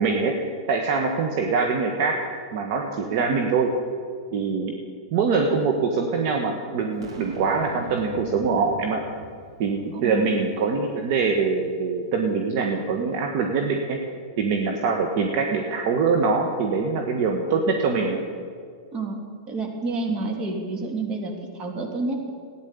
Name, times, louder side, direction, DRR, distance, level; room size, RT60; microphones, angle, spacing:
voice 1, 0.0-2.2 2.5-3.7 4.3-4.7 5.1-9.0 9.6-14.0 14.4-18.2, right 4 dB, 50° right, 3 dB, 1.5 m, -24 dB
Boom, 7.0-10.3, right 2 dB, 90° right, 2.7 m, -40 dB
voice 2, 9.9-10.3 18.9-19.2 19.5-22.3, right 3 dB, 35° right, 2 dB, 2.7 m, -29 dB
14.0 x 9.6 x 8.5 m, 2.1 s
hypercardioid pair, 130°, 3 cm